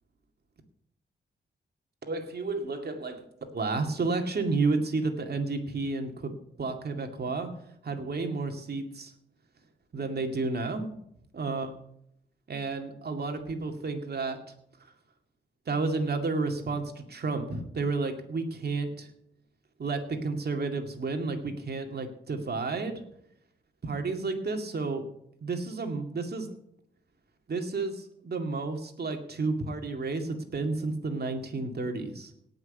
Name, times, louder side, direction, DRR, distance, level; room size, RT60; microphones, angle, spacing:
voice 1, 2.0-3.3 3.5-6.3 6.6-7.5 7.8-9.1 9.9-10.9 11.3-11.7 12.5-14.4 15.7-19.1 19.8-23.0 23.8-25.0 25.4-26.5 27.5-32.3, right 3 dB, 55° right, 5 dB, 2.3 m, -31 dB
17.5 x 6.1 x 8.3 m, 0.74 s
wide cardioid pair, 110°, 20 cm